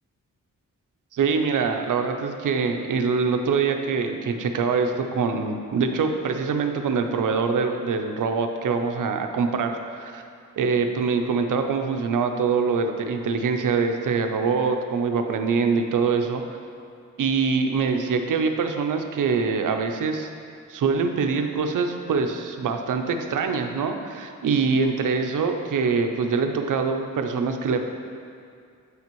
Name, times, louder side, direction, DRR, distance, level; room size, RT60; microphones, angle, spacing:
voice 1, 1.1-10.2 10.6-16.4 17.2-20.3 20.7-27.8, right 5 dB, 75° right, 5 dB, 0.6 m, -24 dB
7.7 x 5.8 x 3.0 m, 2.3 s
wide cardioid pair, 140°, 32 cm